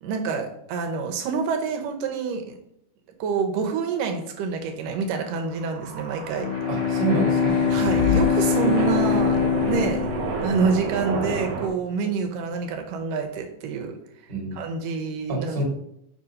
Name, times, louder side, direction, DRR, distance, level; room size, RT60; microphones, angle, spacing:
voice 1, 0.0-2.6 3.2-6.5 7.7-10.0 10.4-14.0 14.5-15.6, right 5 dB, 85° right, 4 dB, 2.6 m, -27 dB
sound 1, 5.3-11.7, right 4 dB, 70° right, 2.7 m, -31 dB
Bowed string instrument, 6.4-11.0, left 7 dB, 85° left, 1.6 m, -23 dB
voice 2, 6.7-7.5 8.6-8.7 14.3-14.7 15.3-15.6, right 3 dB, 30° right, -1 dB, 1.2 m, -27 dB
sound 2, 7.5-10.7, left 7 dB, 55° left, 1.2 m, -32 dB
5.2 x 5.0 x 5.3 m, 0.75 s
omnidirectional pair, 3.7 m